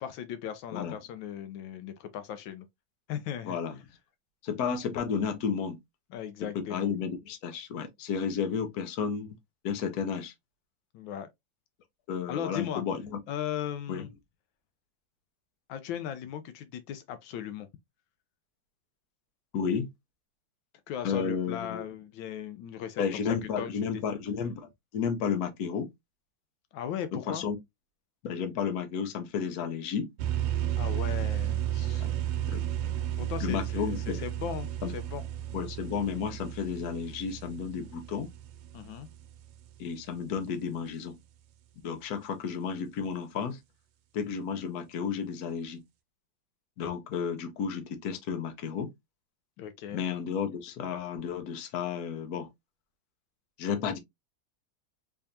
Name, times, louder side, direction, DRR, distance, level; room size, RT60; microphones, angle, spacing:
voice 1, 0.0-2.7 3.1-3.6 6.1-6.9 10.9-11.3 12.3-12.8 13.3-14.1 15.7-17.7 20.9-24.0 26.7-27.4 30.8-32.1 33.2-35.2 38.7-39.1 49.6-50.0, left 9 dB, 85° left, 1.3 m, -37 dB
voice 2, 3.4-3.8 4.4-5.8 6.5-9.4 9.6-10.3 12.1-13.2 13.9-14.1 19.5-19.9 21.0-21.8 23.0-25.9 27.1-27.6 28.2-30.1 32.0-32.1 32.5-32.6 33.4-34.2 34.8-34.9 35.5-38.3 39.8-41.2 41.8-43.6 44.1-45.8 46.8-48.9 49.9-52.5 53.6-54.0, left 6 dB, 60° left, 1.2 m, -32 dB
sound 1, 30.2-39.7, right 11 dB, 85° right, 1.4 m, -33 dB
3.4 x 3.4 x 2.6 m
omnidirectional pair, 2.1 m